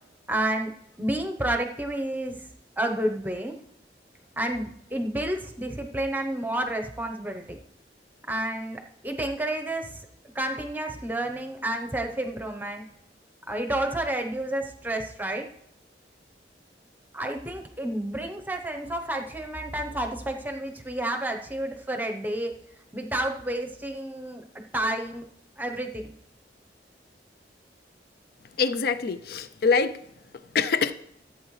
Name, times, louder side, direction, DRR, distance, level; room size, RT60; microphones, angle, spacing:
voice 1, 0.3-0.7 1.0-2.3 2.8-3.6 4.4-7.6 8.3-10.0 10.3-12.8 13.5-15.5 17.1-22.5 22.9-24.4 24.7-25.3 25.6-26.1, right 1 dB, 10° right, 4 dB, 0.8 m, -30 dB
voice 2, 28.6-30.0 30.5-30.9, left 5 dB, 55° left, 12 dB, 0.4 m, -24 dB
14.5 x 8.4 x 3.2 m, 0.76 s
head